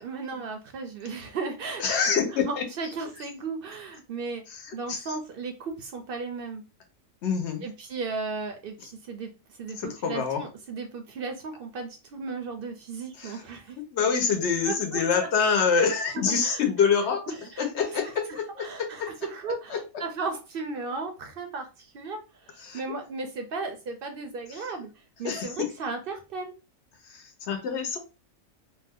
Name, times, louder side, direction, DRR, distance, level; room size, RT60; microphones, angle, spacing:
voice 1, 0.0-2.0 2.3-4.4 4.7-6.6 7.6-9.3 9.6-13.8 14.6-15.0 15.8-16.6 17.3-18.1 18.6-24.9 25.2-26.5, right 4 dB, 60° right, 0.6 m, -35 dB
voice 2, 1.8-2.6 4.9-5.0 7.2-7.6 9.8-10.4 13.2-13.4 13.9-19.1 19.7-19.8 22.6-22.8 25.2-25.7 27.1-28.0, left 6 dB, 60° left, 0.9 m, -26 dB
2.7 x 2.1 x 3.4 m
omnidirectional pair, 1.4 m